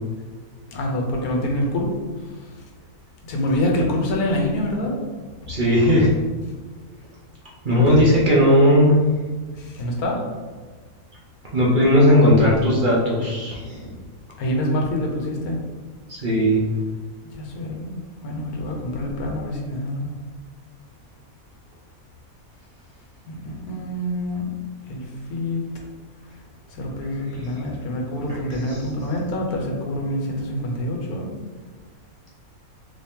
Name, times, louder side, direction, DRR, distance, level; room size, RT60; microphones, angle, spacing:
voice 1, 0.7-1.9 3.3-5.0 9.6-10.2 14.4-15.6 17.4-20.1 23.3-24.5 24.9-25.6 26.7-31.3, left 1 dB, 90° left, 0 dB, 1.3 m, -26 dB
voice 2, 5.5-6.1 7.6-9.0 11.5-13.9 16.1-16.6 27.2-27.5 28.3-28.8, equal, 45° right, -6 dB, 0.7 m, -17 dB
3.2 x 2.8 x 3.5 m, 1.4 s
omnidirectional pair, 1.5 m